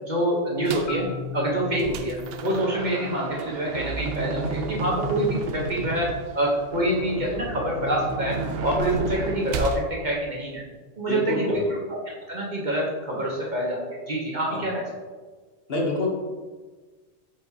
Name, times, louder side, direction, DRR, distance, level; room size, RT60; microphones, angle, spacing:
voice 1, 0.0-6.1 6.3-10.6 11.0-11.6 12.1-14.9, right 1 dB, 40° right, -3 dB, 1.1 m, -26 dB
sound 1, 0.7-1.0 1.5-9.8, right 3 dB, 60° right, 0.7 m, -32 dB
Marimba xylophone, 0.9-5.0, left 5 dB, 75° left, 1.5 m, -40 dB
voice 2, 11.1-11.7 14.5-14.6 15.7-16.1, left 2 dB, 50° left, 0 dB, 1.1 m, -27 dB
8.2 x 4.8 x 2.8 m, 1.4 s
omnidirectional pair, 1.3 m